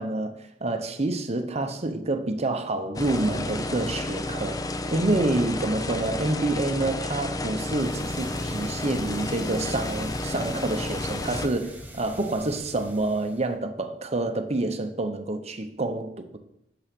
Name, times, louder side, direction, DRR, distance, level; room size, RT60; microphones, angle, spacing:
voice 1, 0.0-16.4, right 2 dB, 35° right, 0.8 m, -28 dB
sound 1, 2.9-11.5, left 2 dB, 20° left, 0.5 m, -31 dB
sound 2, 7.6-13.5, right 1 dB, 10° right, 1.0 m, -43 dB
6.9 x 6.4 x 6.1 m
head